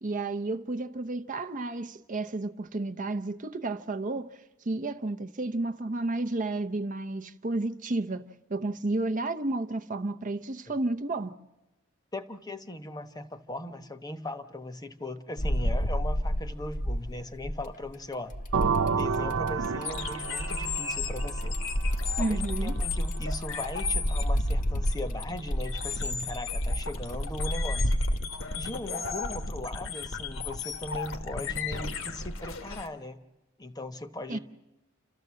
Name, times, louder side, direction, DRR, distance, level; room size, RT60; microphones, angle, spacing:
voice 1, 0.0-4.4 4.7-8.2 8.5-11.3 22.2-22.8 34.3-34.4, right 2 dB, 40° right, 0.7 m, -31 dB
voice 2, 12.1-18.3 18.9-21.6 22.2-28.0 28.5-33.2 33.6-34.4, left 1 dB, 20° left, 1.0 m, -39 dB
sound 1, 15.4-17.8 18.3-28.2, equal, 40° left, 0.9 m, -30 dB
sound 2, 18.5-22.2, right 5 dB, 75° right, 0.7 m, -30 dB
sound 3, 19.8-32.9, left 4 dB, 70° left, 1.4 m, -36 dB
29.0 x 13.5 x 7.5 m
head